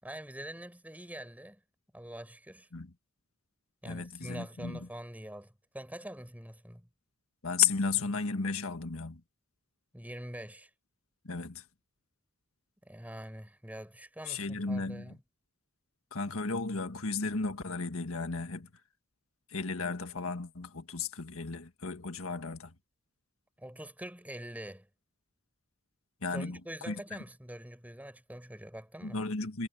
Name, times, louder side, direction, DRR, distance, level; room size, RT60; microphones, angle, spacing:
voice 1, 0.0-1.6 1.9-2.7 3.8-6.9 9.9-10.7 12.8-15.2 23.6-24.9 26.3-29.2, right 1 dB, 5° right, 7.5 m, -44 dB
voice 2, 3.8-4.9 7.4-9.2 11.2-11.6 14.2-15.1 16.1-18.7 19.5-22.7 26.2-26.6 26.8-27.2 29.0-29.7, left 5 dB, 80° left, 1.7 m, -34 dB
head